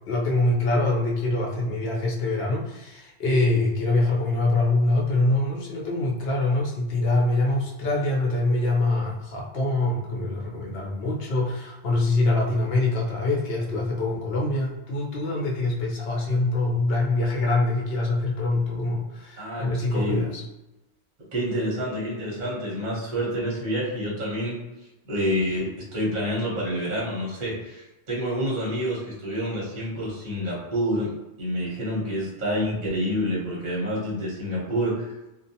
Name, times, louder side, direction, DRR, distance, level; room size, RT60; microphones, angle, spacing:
voice 1, 0.1-20.4, left 2 dB, 60° left, -2 dB, 0.9 m, -24 dB
voice 2, 19.4-20.2 21.3-24.6 25.0-31.1 31.4-35.1, equal, 45° right, -5 dB, 0.8 m, -28 dB
2.4 x 2.2 x 2.7 m, 0.98 s
omnidirectional pair, 1.2 m